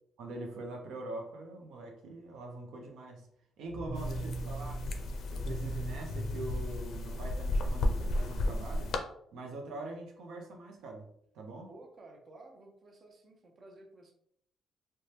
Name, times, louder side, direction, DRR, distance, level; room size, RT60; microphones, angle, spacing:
voice 1, 0.2-3.3 3.6-4.8 5.3-8.9 9.3-11.1 11.3-11.7, right 2 dB, 80° right, 1 dB, 0.5 m, -43 dB
sound 1, 3.7-7.7, right 1 dB, 20° right, 1.0 m, -40 dB
sound 2, 4.0-9.0, left 1 dB, 70° left, 0.4 m, -34 dB
voice 2, 4.1-4.5 11.7-14.1, right 2 dB, 40° right, 2 dB, 0.6 m, -54 dB
2.7 x 2.2 x 3.2 m, 0.69 s
cardioid pair, 90°, 0 cm